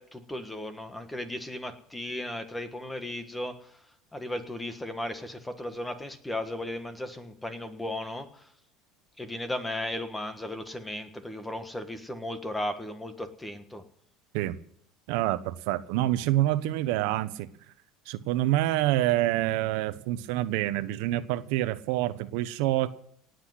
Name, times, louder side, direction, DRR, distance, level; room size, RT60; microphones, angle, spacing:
voice 1, 0.0-3.5 4.1-8.3 9.2-13.8, left 1 dB, 5° left, 9 dB, 1.5 m, -35 dB
voice 2, 15.1-17.5 18.1-22.9, right 15 dB, 70° right, 12 dB, 1.0 m, -27 dB
18.5 x 8.0 x 8.1 m, 0.68 s
supercardioid pair, 145°, 0 cm